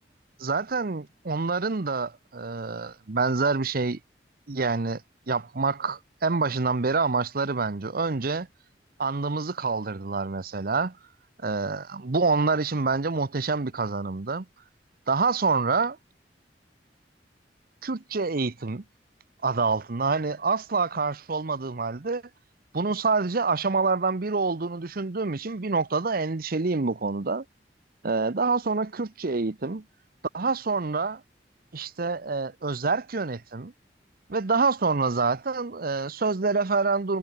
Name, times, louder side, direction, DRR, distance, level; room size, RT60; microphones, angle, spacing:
voice 1, 0.4-4.0 4.5-5.0 5.3-8.5 9.0-10.9 11.4-14.5 15.1-16.0 17.8-18.8 19.4-22.2 22.7-27.4 28.0-29.8 30.3-31.2 31.7-33.7 34.3-37.2, right 4 dB, 55° right, 0.8 m, -26 dB
head